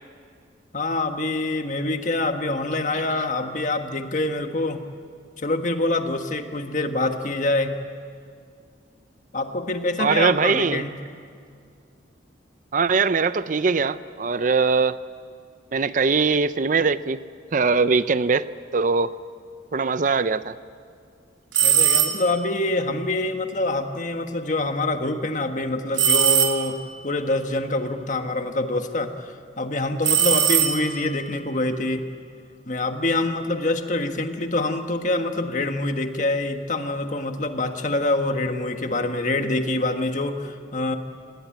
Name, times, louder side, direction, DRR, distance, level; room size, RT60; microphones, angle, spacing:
voice 1, 0.7-4.8 5.4-7.7 9.3-10.9 21.6-26.8 27.0-32.0 32.7-41.0, left 2 dB, 40° left, 6 dB, 1.5 m, -25 dB
voice 2, 10.0-10.8 12.7-15.0 15.7-17.2 17.5-18.5 18.7-19.1 19.7-20.5, right 4 dB, 45° right, 14 dB, 0.5 m, -21 dB
sound 1, 21.5-22.4 26.0-27.0 30.0-31.2, right 8 dB, 80° right, 2.9 m, -20 dB
26.5 x 19.0 x 9.2 m, 2.2 s
head